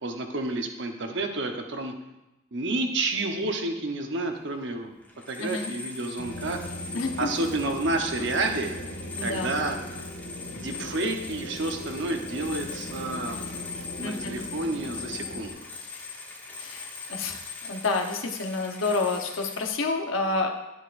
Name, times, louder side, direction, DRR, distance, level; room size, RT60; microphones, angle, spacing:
voice 1, 0.0-1.9 2.5-5.0 5.3-6.6 7.2-8.8 9.2-9.8 10.5-13.5 14.0-15.6, right 2 dB, 60° right, 4 dB, 1.0 m, -30 dB
sound 1, 4.4-4.5 4.8-19.7, left 4 dB, 10° left, 1.0 m, -41 dB
voice 2, 5.4-5.7 6.9-7.3 8.2-8.3 9.2-9.5 14.0-14.4 16.6-17.4 17.7-20.5, left 3 dB, 75° left, 3 dB, 1.0 m, -29 dB
sound 2, 6.2-15.5, equal, 50° left, 1.1 m, -39 dB
10.5 x 10.0 x 2.6 m, 0.98 s
head